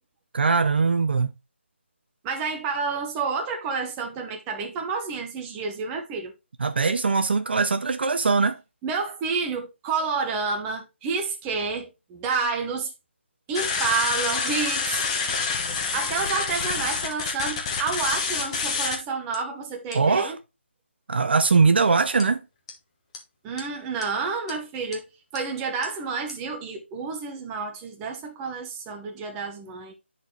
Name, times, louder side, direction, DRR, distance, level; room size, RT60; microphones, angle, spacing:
voice 1, 0.3-1.3 6.6-8.6 19.9-20.3 21.1-22.4, right 4 dB, 55° right, 0.6 m, -21 dB
voice 2, 2.2-6.3 8.8-12.9 13.5-15.0 15.9-20.4 23.4-29.9, right 4 dB, 15° right, 0.9 m, -29 dB
sound 1, 13.5-19.0 19.3-19.4 19.9-20.1 22.2-22.3 22.7-22.8 23.1-23.2 23.6-23.7 24.0-24.1 24.5-24.6 24.9-25.0 25.4-25.5 25.8-25.9 26.3-26.4, left 5 dB, 25° left, 1.3 m, -28 dB
10.0 x 4.2 x 3.2 m
figure-of-eight pair, 155°, 7 cm